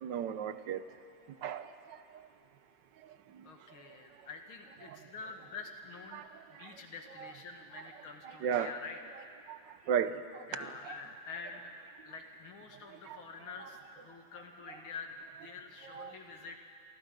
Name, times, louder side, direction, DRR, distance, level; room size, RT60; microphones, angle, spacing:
voice 1, 0.0-0.8 1.4-2.2 3.3-3.5 4.8-5.0 6.1-6.8 7.2-7.3 8.2-8.7 9.5-9.6 9.9-10.4 12.9-13.2 15.8-16.2, right 8 dB, 70° right, 12 dB, 1.3 m, -36 dB
voice 2, 3.4-9.2 10.5-11.7 12.0-16.6, left 4 dB, 90° left, 3 dB, 2.7 m, -47 dB
28.0 x 24.0 x 5.2 m, 2.5 s
omnidirectional pair, 2.2 m